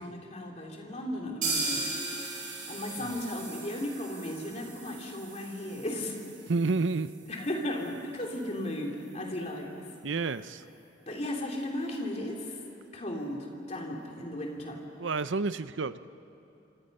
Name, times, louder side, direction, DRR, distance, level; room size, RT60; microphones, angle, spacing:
voice 1, 0.0-1.8 2.4-6.2 7.3-9.9 11.1-12.6 12.9-14.8, left 1 dB, 35° left, 0 dB, 3.3 m, -35 dB
sound 1, 1.4-9.1 9.4-9.5 9.9-10.0 10.4-10.5, right 3 dB, 45° right, 7.5 m, -38 dB
voice 2, 6.5-7.1 10.0-10.6 15.0-16.1, right 3 dB, 80° right, 14 dB, 0.7 m, -30 dB
27.0 x 26.0 x 5.6 m, 2.9 s
head